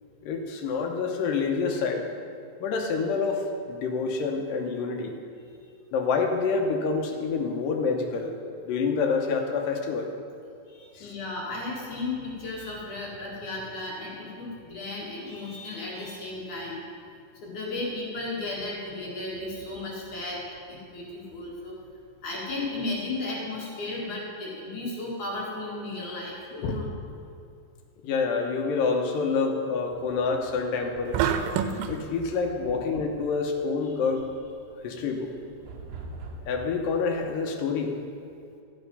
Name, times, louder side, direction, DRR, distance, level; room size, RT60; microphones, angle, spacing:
voice 1, 0.2-2.1 2.6-5.1 5.9-8.3 8.6-10.1 10.9-11.1 26.5-26.8 28.0-31.2 31.8-34.3 34.8-35.3 36.5-38.0, left 4 dB, 75° left, 3 dB, 2.6 m, -27 dB
voice 2, 10.7-16.8 17.4-21.8 22.2-26.9 32.6-32.8 34.9-35.0, left 2 dB, 60° left, -5 dB, 3.5 m, -35 dB
sound 1, 29.9-37.5, right 3 dB, 70° right, 2.3 m, -46 dB
sound 2, 31.1-32.0, right 8 dB, 90° right, 2.3 m, -26 dB
14.0 x 7.9 x 5.5 m, 2.5 s
omnidirectional pair, 4.1 m